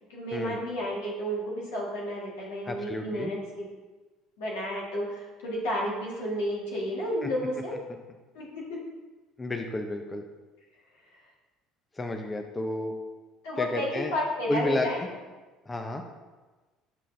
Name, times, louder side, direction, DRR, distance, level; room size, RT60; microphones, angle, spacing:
voice 1, 0.1-3.7 4.4-7.8 8.3-8.5 13.4-15.0, equal, 80° left, -3 dB, 1.6 m, -31 dB
voice 2, 2.7-3.3 7.2-7.3 9.4-10.2 12.0-12.9 13.6-14.1 14.5-15.1 15.7-16.0, left 2 dB, 20° left, 4 dB, 0.6 m, -31 dB
6.5 x 5.6 x 2.6 m, 1.2 s
hypercardioid pair, 70°, 0 cm